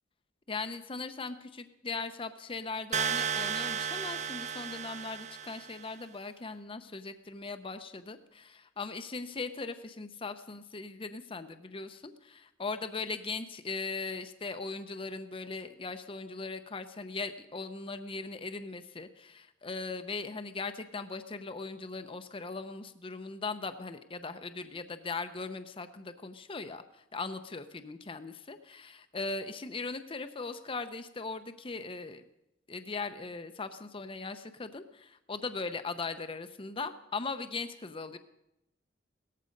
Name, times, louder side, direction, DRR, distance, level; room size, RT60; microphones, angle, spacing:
voice 1, 0.5-32.2 32.7-38.2, left 3 dB, 30° left, 9 dB, 0.7 m, -39 dB
sound 1, 2.9-5.8, right 8 dB, 40° right, 0.6 m, -34 dB
17.5 x 14.0 x 5.3 m, 0.86 s
head